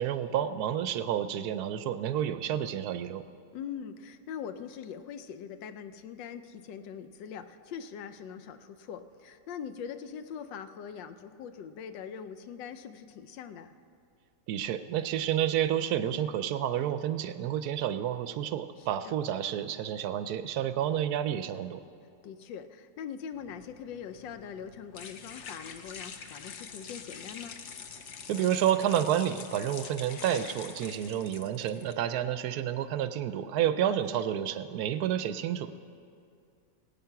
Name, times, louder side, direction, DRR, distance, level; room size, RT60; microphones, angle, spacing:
voice 1, 0.0-3.2 14.5-21.8 28.3-35.7, right 10 dB, 70° right, 11 dB, 1.0 m, -30 dB
voice 2, 3.5-13.7 18.8-19.2 22.2-27.6 33.7-34.2, left 7 dB, 80° left, 10 dB, 1.4 m, -42 dB
sound 1, 23.3-31.9, left 6 dB, 60° left, 0.8 m, -46 dB
19.0 x 8.8 x 5.8 m, 2.4 s
omnidirectional pair, 2.0 m